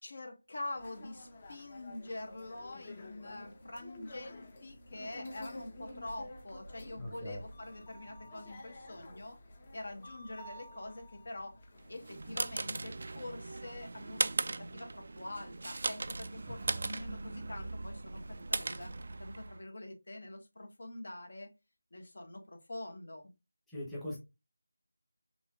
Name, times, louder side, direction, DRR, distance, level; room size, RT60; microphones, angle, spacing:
voice 1, 0.0-9.4 9.7-11.6 11.9-18.9 19.2-21.5 21.9-23.3, left 2 dB, 55° left, 1.5 m, -45 dB
sound 1, 0.8-12.3, left 1 dB, 25° left, 1.0 m, -50 dB
voice 2, 6.9-7.4 16.5-16.9 23.7-24.2, left 1 dB, ahead, 1.0 m, -42 dB
sound 2, 11.9-19.6, right 3 dB, 45° right, 0.4 m, -38 dB
6.0 x 3.7 x 2.4 m
figure-of-eight pair, 170°, 0 cm